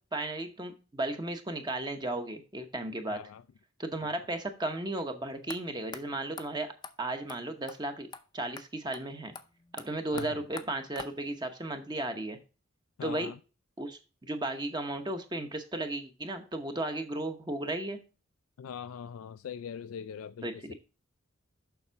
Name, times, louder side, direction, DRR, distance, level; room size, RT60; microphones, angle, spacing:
voice 1, 0.1-3.2 3.8-6.7 7.0-8.1 8.3-9.3 9.7-12.4 13.0-13.3 13.8-18.0 20.4-20.7, right 2 dB, 20° right, 0.8 m, -35 dB
voice 2, 3.1-3.4 4.0-4.1 10.1-10.4 13.0-13.4 18.6-20.7, left 7 dB, 90° left, 0.3 m, -42 dB
sound 1, 5.5-5.6 5.9-6.0 6.4-6.5 6.8-6.9 7.3-7.4 7.7-7.8 8.1-8.2 8.6-8.7 8.9-9.0 9.3-11.5, left 4 dB, 20° left, 0.5 m, -44 dB
7.1 x 6.0 x 4.4 m
head